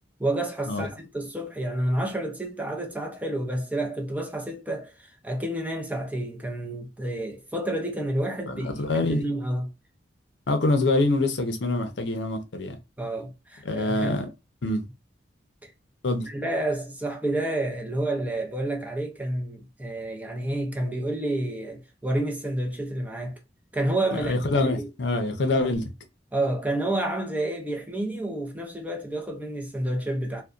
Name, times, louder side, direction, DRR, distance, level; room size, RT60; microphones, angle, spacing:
voice 1, 0.2-8.7 9.0-9.7 13.0-14.2 14.6-14.8 15.6-15.7 16.3-23.4 23.7-24.4 24.8-24.9 25.6-25.7 26.3-30.4, right 1 dB, 10° right, 0.5 m, -29 dB
voice 2, 8.5-9.2 10.5-12.8 13.7-14.3 14.6-14.8 16.0-16.3 24.1-25.8, left 2 dB, 70° left, 0.6 m, -25 dB
2.6 x 2.1 x 2.3 m
head